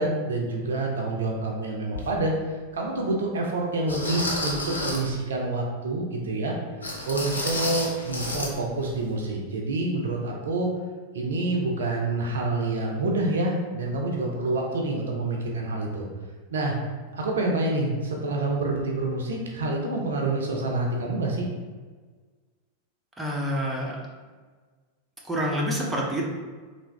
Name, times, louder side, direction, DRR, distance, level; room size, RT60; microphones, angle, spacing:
voice 1, 0.0-2.3 2.7-6.5 7.0-10.7 11.1-16.1 16.5-16.8 17.1-21.5, right 2 dB, 65° right, 0 dB, 0.5 m, -27 dB
sound 1, 1.9-2.1 2.8-2.9 3.9-5.2 6.8-8.5 8.8-9.0 9.4-9.5, left 1 dB, 75° left, 0.5 m, -30 dB
voice 2, 23.2-24.0 25.2-26.2, equal, 10° right, -3 dB, 0.7 m, -27 dB
3.4 x 2.5 x 3.3 m, 1.4 s
figure-of-eight pair, 90°, 0 cm